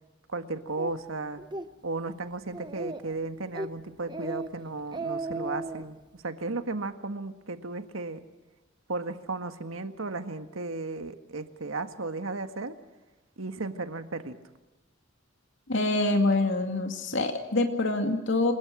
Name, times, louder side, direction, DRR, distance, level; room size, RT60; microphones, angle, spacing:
voice 1, 0.3-1.4 1.8-8.2 8.9-12.7 13.4-14.4, right 3 dB, 80° right, 8 dB, 1.7 m, -35 dB
Speech, 0.8-0.9 1.4-1.7 2.1-2.2 2.5-3.1 3.5-3.7 4.1-4.5 4.8-5.8, right 2 dB, 20° right, 1.0 m, -35 dB
voice 2, 15.7-18.5, left 2 dB, 65° left, 4 dB, 2.4 m, -25 dB
27.0 x 21.5 x 6.3 m, 1.1 s
head